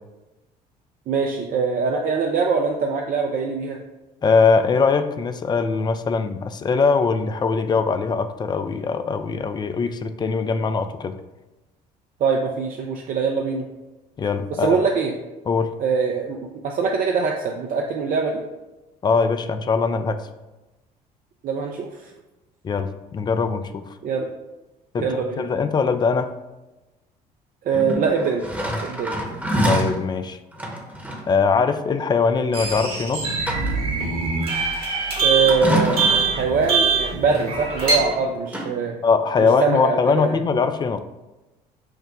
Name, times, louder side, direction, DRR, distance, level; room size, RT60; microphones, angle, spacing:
voice 1, 1.1-3.8 12.2-13.7 14.5-15.1 15.8-18.4 21.4-22.1 24.0-24.3 25.0-25.4 27.6-28.4 28.8-29.2 35.2-39.0 39.4-40.4, right 5 dB, 40° right, 1 dB, 0.5 m, -23 dB
voice 2, 4.2-11.2 14.2-14.8 15.5-15.7 19.0-20.2 22.6-23.8 24.9-25.1 25.4-26.3 29.6-30.4 31.3-33.3 39.0-41.0, left 5 dB, 20° left, 9 dB, 0.3 m, -21 dB
sound 1, 27.7-30.0 30.5-31.3 32.7-32.9 33.2-34.0 35.4-36.4 37.6-38.2 38.5-38.6, right 1 dB, 10° right, 0.9 m, -26 dB
sound 2, 32.5-38.0, right 4 dB, 75° right, 1.1 m, -23 dB
4.8 x 2.1 x 4.5 m, 1.1 s
figure-of-eight pair, 50°, 21 cm